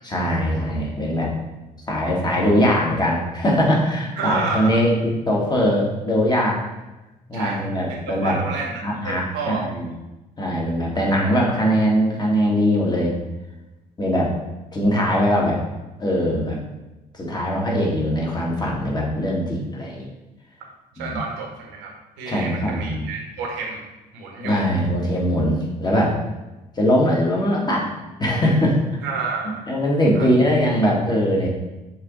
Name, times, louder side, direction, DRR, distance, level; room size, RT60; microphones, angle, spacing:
voice 1, 0.0-1.3 1.9-6.6 7.3-8.4 8.8-9.9 10.4-13.1 14.0-14.3 14.7-15.6 16.0-16.6 17.1-20.1 21.0-21.2 22.3-23.0 24.4-26.2 26.8-27.9 28.2-28.8 29.7-31.5, equal, 20° left, -3 dB, 1.8 m, -21 dB
voice 2, 4.2-4.8 7.3-9.6 10.9-11.2 20.9-23.8 24.1-24.7 29.0-29.7 30.1-30.3, right 4 dB, 65° right, 0 dB, 1.2 m, -30 dB
6.4 x 3.8 x 3.9 m, 1.0 s
figure-of-eight pair, 45°, 20 cm